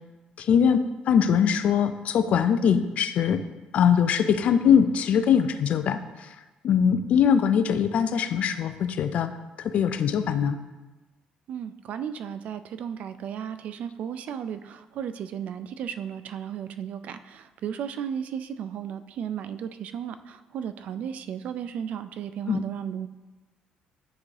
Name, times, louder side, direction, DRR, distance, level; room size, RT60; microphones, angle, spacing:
voice 1, 0.4-0.8 1.1-3.4 3.7-6.0 6.6-9.3 9.6-10.6 22.5-22.6, left 7 dB, 55° left, 11 dB, 0.4 m, -22 dB
voice 2, 11.5-23.1, right 8 dB, 60° right, 11 dB, 0.3 m, -34 dB
9.6 x 3.5 x 3.3 m, 1.2 s
cardioid pair, 145°, 3 cm